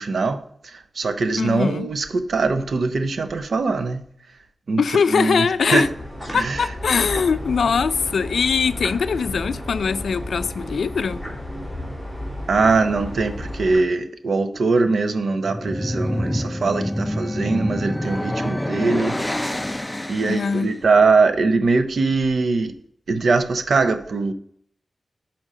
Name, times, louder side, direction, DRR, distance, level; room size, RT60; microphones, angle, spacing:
voice 1, 0.0-4.0 4.7-4.8 5.1-5.5 5.7-5.9 6.3-6.7 12.5-19.2 20.1-22.7 23.1-24.3, right 4 dB, 70° right, 0.7 m, -21 dB
voice 2, 1.4-1.9 4.8-5.9 6.3-11.2 20.2-20.7, left 5 dB, 85° left, 0.3 m, -21 dB
sound 1, 5.8-13.8, left 1 dB, 5° right, 2.5 m, -32 dB
sound 2, 15.3-20.7, left 1 dB, 10° left, 0.4 m, -26 dB
6.2 x 4.4 x 6.5 m
wide cardioid pair, 105°, 0 cm